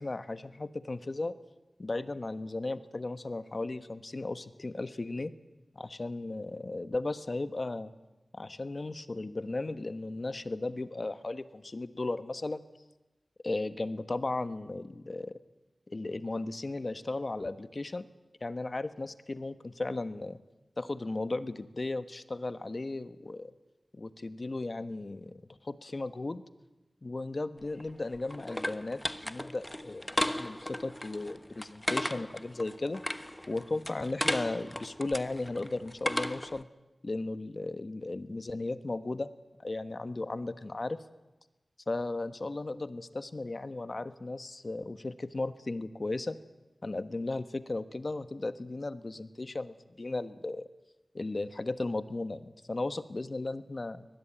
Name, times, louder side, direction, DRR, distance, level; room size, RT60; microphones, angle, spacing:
voice 1, 0.0-1.3 1.8-5.3 5.7-7.9 8.3-12.6 13.4-15.4 15.9-18.1 18.4-20.4 20.8-23.5 23.9-26.4 27.0-33.0 33.5-36.7 37.0-39.3 39.6-41.0 41.9-46.4 46.8-50.7 51.1-54.1, left 2 dB, 55° left, 11 dB, 1.3 m, -36 dB
sound 1, 27.6-36.6, left 1 dB, 15° left, 1.2 m, -36 dB
23.0 x 20.0 x 9.0 m, 1.1 s
cardioid pair, 40°, 0 cm